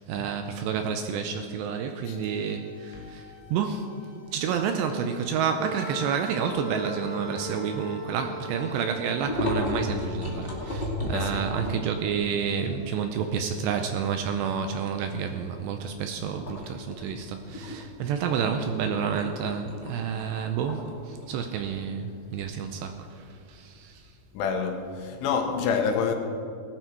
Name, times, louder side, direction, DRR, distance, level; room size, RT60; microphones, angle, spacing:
voice 1, 0.0-3.9 4.3-24.1, right 7 dB, 80° right, 6 dB, 2.6 m, -30 dB
sound 1, 2.1-14.9, left 1 dB, 25° right, 5.2 m, -50 dB
Wind instrument woodwind instrument, 5.6-10.7, right 1 dB, 65° right, 3.8 m, -39 dB
sound 2, 9.2-12.1 12.6-12.7 13.0-14.2 14.6-14.9 15.3-15.8 16.3-25.0, left 1 dB, 30° left, 0.9 m, -34 dB
voice 2, 11.1-11.5 24.3-26.1, left 6 dB, 85° left, 4 dB, 3.7 m, -28 dB
19.0 x 12.0 x 4.6 m, 2.4 s
omnidirectional pair, 5.6 m